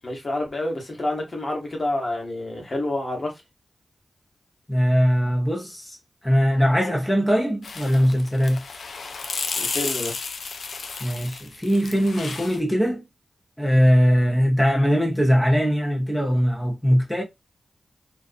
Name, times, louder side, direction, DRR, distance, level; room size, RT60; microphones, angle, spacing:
voice 1, 0.0-3.3 9.6-10.2, left 1 dB, 50° left, 1.1 m, -28 dB
voice 2, 4.7-6.0 6.2-8.6 11.0-13.0 13.6-17.2, equal, 5° left, 0.8 m, -20 dB
sound 1, 7.6-12.6, left 4 dB, 85° left, 0.4 m, -32 dB
2.4 x 2.3 x 2.4 m
cardioid pair, 60°, 0 cm